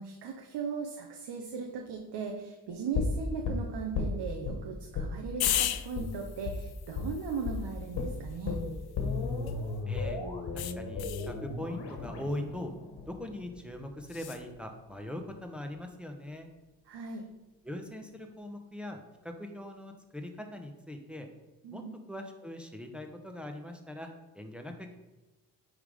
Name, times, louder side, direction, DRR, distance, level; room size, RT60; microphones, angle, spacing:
voice 1, 0.0-8.6 16.9-17.2 21.6-21.9, right 5 dB, 90° right, 2 dB, 0.9 m, -38 dB
sound 1, 2.9-4.6 4.9-5.1 5.4-5.6 5.9-6.1 6.5-6.6 7.0-7.1 7.5-7.6 8.0-13.9 14.2-14.3, left 4 dB, 90° left, 1.3 m, -35 dB
sound 2, 5.4-9.8 10.6-11.3 14.1-14.4, left 12 dB, 70° left, 0.5 m, -36 dB
voice 2, 9.9-10.2 10.5-12.7 13.1-16.5 17.6-21.3 21.7-21.8 22.1-24.9, left 1 dB, 5° right, 4 dB, 0.9 m, -41 dB
8.9 x 3.8 x 4.9 m, 1.1 s
cardioid pair, 90°, 40 cm